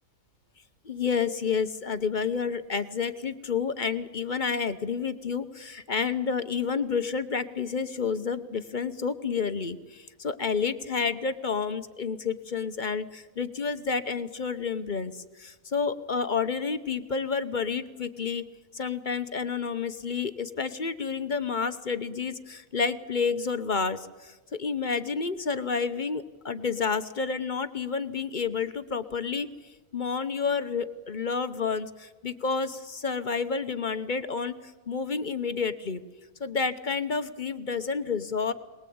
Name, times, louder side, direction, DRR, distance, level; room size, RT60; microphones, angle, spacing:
voice 1, 0.8-18.4 18.7-29.5 29.9-34.5 34.9-36.0 36.4-38.5, left 5 dB, 40° left, 11 dB, 0.9 m, -30 dB
22.5 x 20.5 x 8.6 m, 1.2 s
omnidirectional pair, 1.5 m